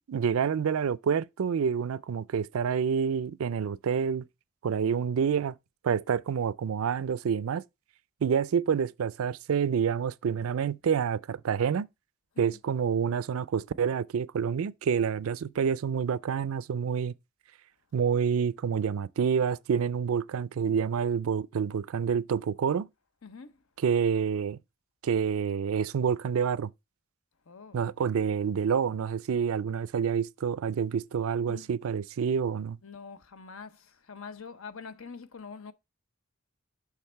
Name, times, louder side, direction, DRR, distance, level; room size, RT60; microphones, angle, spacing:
voice 1, 0.1-4.2 4.6-5.5 5.8-7.6 8.2-11.9 12.4-17.1 17.9-22.9 23.8-24.6 25.0-26.7 27.7-32.8, right 7 dB, 75° right, 0.4 m, -28 dB
voice 2, 23.2-23.6 27.5-27.8 31.5-31.7 32.8-35.7, left 5 dB, 75° left, 0.7 m, -45 dB
6.5 x 3.5 x 5.5 m
head